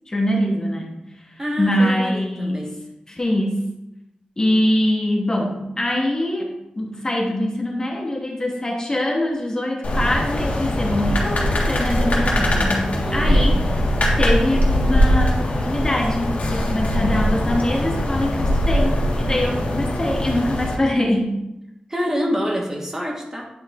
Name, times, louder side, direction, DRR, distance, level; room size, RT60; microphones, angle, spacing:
voice 1, 0.1-1.0 1.3-2.6 3.1-3.6 4.4-13.5 14.2-21.4, left 1 dB, 25° left, -1 dB, 1.0 m, -23 dB
voice 2, 1.4-2.8 13.0-13.5 21.9-23.4, equal, 20° right, -1 dB, 1.2 m, -26 dB
sound 1, 9.8-20.7, equal, 75° left, 1.6 m, -21 dB
9.7 x 3.5 x 3.5 m, 0.89 s
wide cardioid pair, 125°, 3 cm